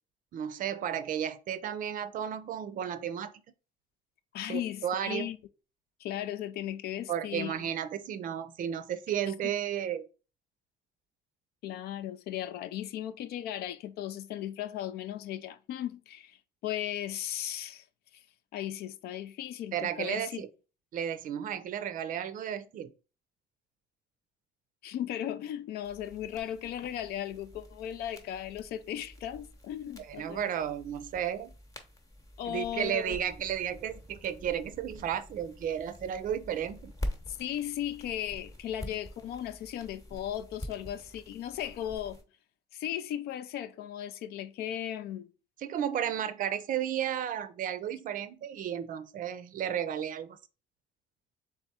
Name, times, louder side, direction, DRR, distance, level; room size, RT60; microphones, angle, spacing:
voice 1, 0.3-3.3 4.5-5.3 7.1-10.1 19.7-20.5 20.9-22.9 30.0-31.5 32.5-36.9 45.6-50.4, right 9 dB, 55° right, 0.5 m, -33 dB
voice 2, 4.3-5.4 6.0-7.5 11.6-16.4 16.6-17.8 18.5-20.4 24.8-30.5 32.4-33.2 37.3-42.2 42.7-45.3, left 11 dB, 70° left, 0.4 m, -36 dB
sound 1, 25.8-42.2, left 1 dB, 20° left, 0.9 m, -46 dB
3.4 x 3.4 x 4.1 m
cardioid pair, 110°, 17 cm